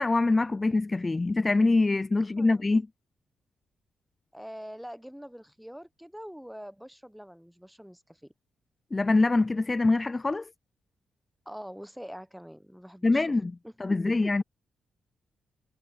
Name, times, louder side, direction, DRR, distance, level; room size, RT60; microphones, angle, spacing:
voice 1, 0.0-2.9 8.9-10.5 13.0-13.5 13.8-14.4, left 3 dB, 30° left, 0.5 m, -24 dB
voice 2, 4.3-8.3 11.4-13.3 13.6-13.7 14.0-14.1, equal, ahead, 1.2 m, -44 dB
hypercardioid pair, 45°, 0 cm